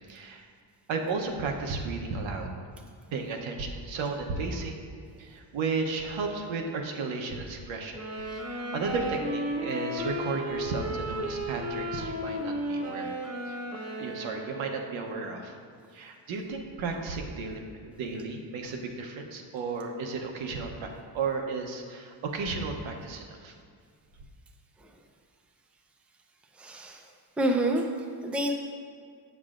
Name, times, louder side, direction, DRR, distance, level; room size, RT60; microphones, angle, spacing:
voice 1, 0.1-0.4 0.9-2.5 3.1-4.9 5.2-8.0 8.3-13.2 13.5-13.6 14.0-15.6 15.9-20.9 21.1-23.5, right 4 dB, 85° right, 2 dB, 0.8 m, -34 dB
sound 1, 7.9-15.0, right 1 dB, 35° right, 0.9 m, -34 dB
voice 2, 26.5-27.1 27.4-28.5, right 1 dB, 5° right, 3 dB, 0.4 m, -28 dB
7.3 x 7.1 x 2.4 m, 2.1 s
cardioid pair, 105°, 45 cm